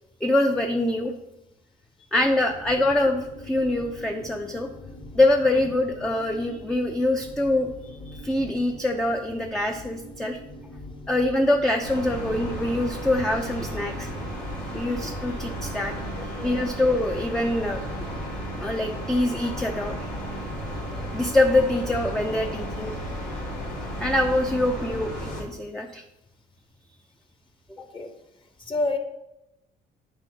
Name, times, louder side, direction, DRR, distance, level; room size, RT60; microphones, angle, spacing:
voice 1, 0.2-1.1 2.1-4.7 5.1-7.7 8.1-10.4 11.1-14.1 14.7-17.8 18.6-20.0 21.1-22.9 24.0-26.0, left 1 dB, 5° left, 3 dB, 0.5 m, -24 dB
sound 1, 2.1-16.1, left 1 dB, 65° left, 2.3 m, -44 dB
sound 2, 11.8-25.4, equal, 85° left, 2.5 m, -33 dB
voice 2, 16.2-16.6 22.2-22.6 27.9-28.1 28.6-29.0, left 2 dB, 30° left, 5 dB, 1.0 m, -30 dB
9.8 x 4.5 x 2.8 m, 0.89 s
cardioid pair, 110°, 17 cm